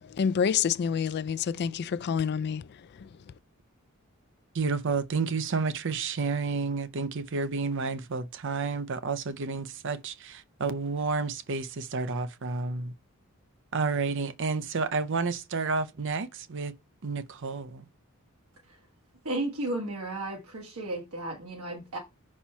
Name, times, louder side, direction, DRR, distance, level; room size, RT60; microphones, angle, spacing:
voice 1, 0.0-3.2, left 7 dB, 50° left, 0.3 m, -28 dB
voice 2, 4.5-12.9 13.7-16.7 17.0-17.8, right 4 dB, 55° right, 0.6 m, -30 dB
voice 3, 19.2-22.0, right 2 dB, 80° right, 1.5 m, -34 dB
5.7 x 4.3 x 4.3 m
head